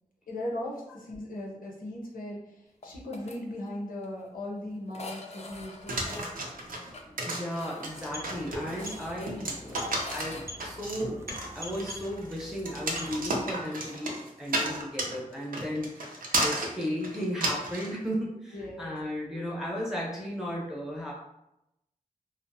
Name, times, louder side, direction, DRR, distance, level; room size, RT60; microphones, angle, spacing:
voice 1, 0.3-6.3 18.5-19.0 19.3-19.5, left 1 dB, 85° left, -3 dB, 0.6 m, -38 dB
sound 1, 2.8-3.4 3.7-3.8 4.0-4.1 4.9-10.5, left 3 dB, 50° left, 0.4 m, -46 dB
sound 2, 5.9-17.9, right 2 dB, 80° right, 0.5 m, -33 dB
voice 2, 7.0-9.8 10.1-11.2 11.5-21.1, equal, 5° right, -4 dB, 0.8 m, -35 dB
sound 3, 7.8-13.6, left 1 dB, 20° right, 0.3 m, -45 dB
2.7 x 2.0 x 2.6 m, 0.86 s
wide cardioid pair, 90°, 14 cm